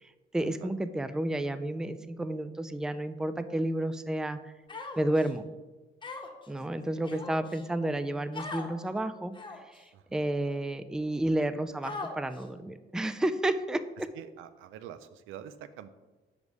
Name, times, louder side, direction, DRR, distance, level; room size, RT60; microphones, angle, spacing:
voice 1, 0.0-4.5 5.0-5.5 6.5-9.3 9.7-9.8 10.1-14.1, right 1 dB, 5° right, 12 dB, 0.3 m, -31 dB
Human voice, 4.7-5.3 6.0-6.5 7.0-7.6 8.3-8.7 9.3-9.8 10.5-10.6 11.8-12.4, left 3 dB, 25° left, 1.0 m, -40 dB
voice 2, 9.9-10.3 14.1-15.9, right 10 dB, 90° right, 12 dB, 0.4 m, -47 dB
5.0 x 4.8 x 5.3 m, 1.2 s
cardioid pair, 90°, 20 cm